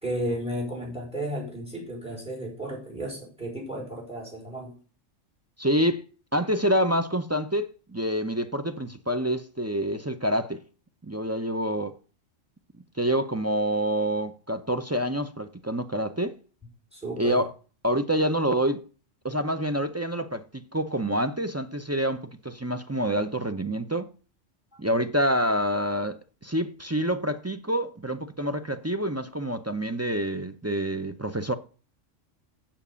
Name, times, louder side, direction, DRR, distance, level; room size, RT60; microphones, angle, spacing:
voice 1, 0.0-4.7 16.9-17.4, right 1 dB, 5° right, 5.0 m, -33 dB
voice 2, 5.6-6.0 6.3-10.6 11.0-11.9 13.0-16.4 17.2-17.5 17.8-18.8 19.2-24.1 24.8-31.5, equal, 25° right, 0.3 m, -27 dB
7.3 x 7.3 x 6.8 m
omnidirectional pair, 1.3 m